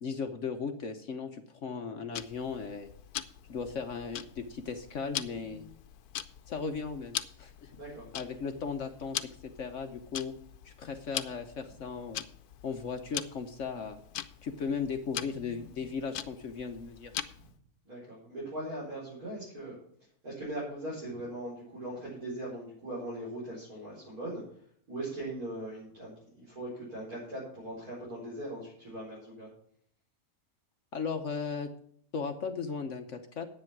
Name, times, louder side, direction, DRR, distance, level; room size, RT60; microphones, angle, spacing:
voice 1, 0.0-2.9 3.5-5.7 6.5-7.7 8.1-9.2 9.4-10.3 10.6-12.2 12.6-14.0 14.4-17.1 30.9-31.7 32.1-33.5, left 5 dB, 60° left, 6 dB, 1.1 m, -36 dB
Tick-tock, 2.1-17.6, left 11 dB, 90° left, 1.2 m, -42 dB
voice 2, 7.7-8.1 17.8-29.5, right 1 dB, 75° right, -7 dB, 5.2 m, -40 dB
10.5 x 8.6 x 5.9 m, 0.62 s
omnidirectional pair, 1.6 m